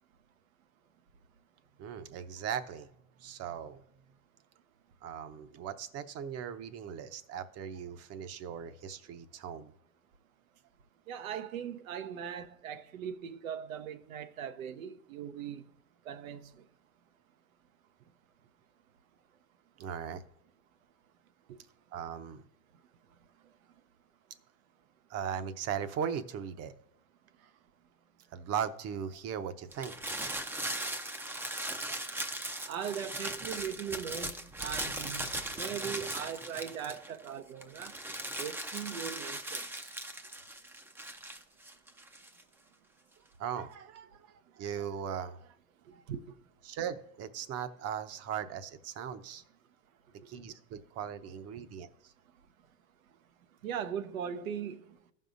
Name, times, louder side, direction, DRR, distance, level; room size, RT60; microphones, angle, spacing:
voice 1, 1.8-2.9 3.2-3.8 5.0-9.7 19.8-20.2 21.9-22.4 25.1-26.7 27.4-27.5 28.3-30.0 30.8-31.0 31.5-32.0 43.4-45.6 45.9-46.0 46.6-49.4 50.3-52.1, right 8 dB, 40° right, 0.7 m, -39 dB
voice 2, 11.1-15.6 16.0-16.6 21.5-21.6 32.7-38.0 38.4-39.9 46.1-46.2 51.6-51.7 53.6-55.0, right 8 dB, 80° right, 0.7 m, -40 dB
sound 1, 29.7-37.3 37.6-42.4, right 1 dB, 5° right, 0.5 m, -39 dB
15.0 x 5.5 x 2.5 m
hypercardioid pair, 95°, 40 cm